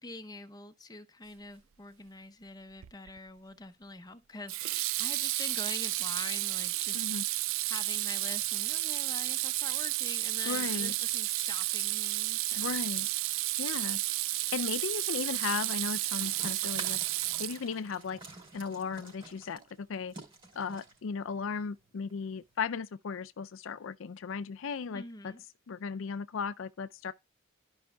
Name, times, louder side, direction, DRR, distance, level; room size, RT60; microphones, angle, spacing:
voice 1, 0.0-7.4 7.7-12.8 24.9-25.4, left 3 dB, 20° left, 0.7 m, -45 dB
Water tap faucet / Sink (filling or washing), 2.8-3.2 4.5-17.9, right 18 dB, 70° right, 0.3 m, -32 dB
voice 2, 10.5-10.9 12.6-13.1 13.6-14.0 14.5-17.0 17.4-18.2 18.5-20.1 20.5-25.3 25.7-27.1, left 5 dB, 65° left, 0.4 m, -36 dB
sound 1, 16.1-22.6, right 2 dB, 20° right, 4.0 m, -49 dB
13.0 x 5.4 x 2.2 m
head